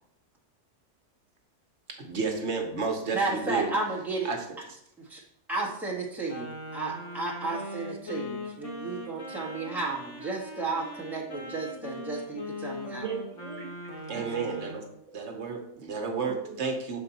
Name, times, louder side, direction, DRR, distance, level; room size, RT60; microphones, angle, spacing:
voice 1, 1.9-3.7 4.2-4.4 14.1-14.8 15.1-17.0, right 4 dB, 60° right, 3 dB, 1.2 m, -31 dB
voice 2, 3.1-4.3 5.1-5.2 5.5-13.0, right 3 dB, ahead, -5 dB, 1.2 m, -33 dB
Wind instrument woodwind instrument, 6.3-14.9, left 1 dB, 70° left, 1.6 m, -40 dB
voice 3, 13.0-14.8 15.1-15.2 16.2-16.6, right 6 dB, 35° right, 1 dB, 1.0 m, -39 dB
6.4 x 4.3 x 4.1 m, 0.75 s
omnidirectional pair, 1.3 m